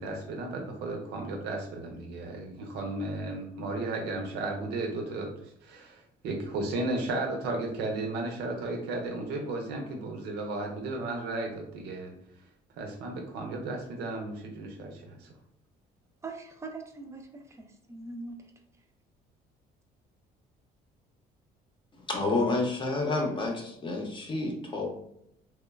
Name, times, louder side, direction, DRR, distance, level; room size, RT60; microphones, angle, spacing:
voice 1, 0.0-5.3 5.6-12.1 12.8-15.3, right 2 dB, 80° right, 3 dB, 0.6 m, -34 dB
voice 2, 16.2-18.4, right 3 dB, 15° right, 3 dB, 0.4 m, -42 dB
voice 3, 22.1-24.9, left 2 dB, 30° left, 1 dB, 0.6 m, -29 dB
3.0 x 2.1 x 2.2 m, 0.74 s
cardioid pair, 110°, 17 cm